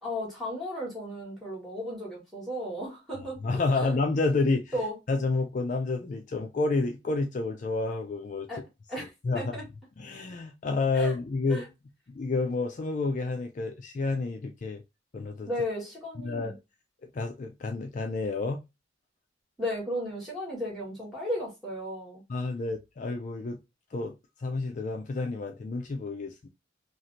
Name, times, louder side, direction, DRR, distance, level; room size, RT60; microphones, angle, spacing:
voice 1, 0.0-3.4 3.7-3.9 4.7-5.0 8.5-8.6 8.9-9.6 10.9-11.1 11.5-11.7 15.5-16.6 19.6-22.2, equal, ahead, 1.7 m, -34 dB
voice 2, 3.4-4.7 5.1-8.5 9.2-9.4 10.0-11.6 12.2-14.8 15.1-15.5 16.2-16.5 17.1-18.6 22.3-23.6 23.9-24.2 24.4-26.5, left 3 dB, 40° left, 0.4 m, -29 dB
3.1 x 2.5 x 2.6 m
head